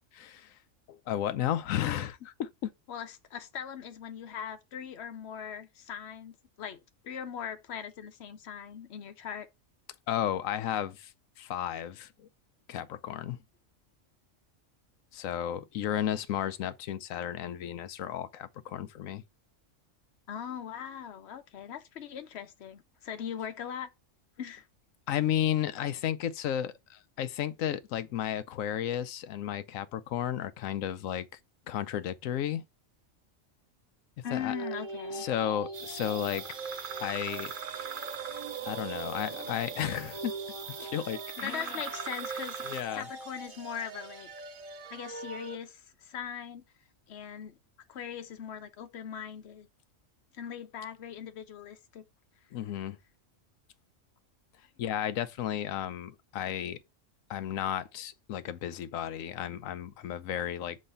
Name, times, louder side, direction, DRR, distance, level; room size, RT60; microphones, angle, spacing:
voice 1, 0.1-0.6 0.9-2.7 10.1-11.1 11.4-12.3 12.7-13.4 15.1-19.2 25.1-31.3 31.7-32.6 34.3-34.5 35.1-36.6 37.0-37.5 38.6-40.3 40.8-41.8 42.6-43.1 52.5-53.0 54.8-56.8 57.3-60.8, left 10 dB, 85° left, 1.0 m, -33 dB
voice 2, 2.9-9.5 20.3-23.9 24.4-24.7 34.2-35.3 41.4-42.6 42.9-44.3 44.9-46.6 47.1-47.6 47.9-49.7 50.4-52.0, left 8 dB, 60° left, 1.0 m, -40 dB
sound 1, 34.3-45.6, right 3 dB, 80° right, 1.5 m, -43 dB
sound 2, 35.7-42.8, right 7 dB, 50° right, 0.7 m, -40 dB
6.4 x 3.2 x 5.5 m
omnidirectional pair, 1.3 m